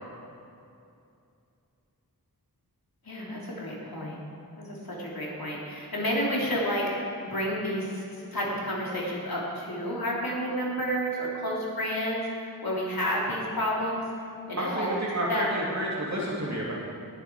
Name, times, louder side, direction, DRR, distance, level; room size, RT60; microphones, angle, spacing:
voice 1, 3.0-4.2 4.6-6.8 7.2-8.0 8.3-14.0 14.5-14.9 15.3-15.4, equal, 70° left, -5 dB, 3.3 m, -30 dB
voice 2, 14.6-16.7, right 1 dB, 45° right, -6 dB, 2.5 m, -30 dB
18.5 x 7.9 x 4.8 m, 2.5 s
wide cardioid pair, 55°, 38 cm